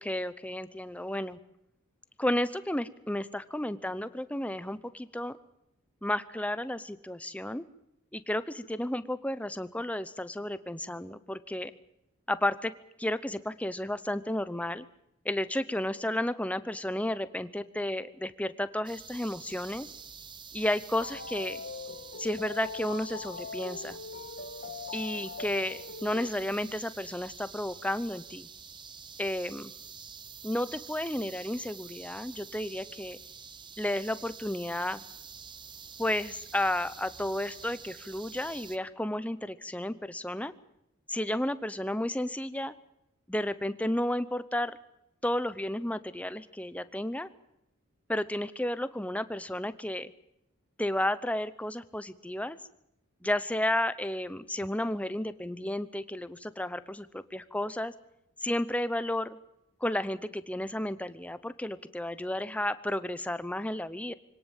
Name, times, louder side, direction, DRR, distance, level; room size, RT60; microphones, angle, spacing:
voice 1, 0.0-1.4 2.2-5.4 6.0-7.6 8.1-11.7 12.3-12.7 13.0-14.8 15.2-19.9 20.5-21.6 22.2-24.0 24.9-28.5 29.2-29.7 30.4-33.2 33.8-35.0 36.0-40.5 41.1-42.7 43.3-44.8 45.2-47.3 48.1-50.1 50.8-52.6 53.2-57.9 58.4-59.4 59.8-64.1, left 1 dB, 5° left, 14 dB, 0.8 m, -32 dB
sound 1, 18.8-38.8, right 6 dB, 20° right, 0.8 m, -48 dB
sound 2, 21.0-26.3, left 4 dB, 50° left, 1.5 m, -41 dB
24.5 x 18.0 x 7.3 m, 0.81 s
head